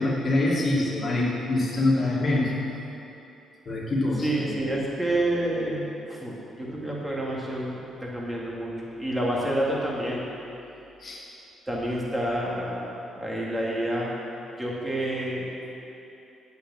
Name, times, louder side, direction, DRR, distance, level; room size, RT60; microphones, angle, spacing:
voice 1, 0.0-2.5 3.7-4.6 11.0-11.2, left 2 dB, 35° left, -6 dB, 2.6 m, -25 dB
voice 2, 4.2-10.2 11.7-14.1 14.6-15.5, right 1 dB, 10° right, -4 dB, 2.3 m, -29 dB
8.7 x 6.6 x 7.5 m, 2.9 s
cardioid pair, 90°, 0 cm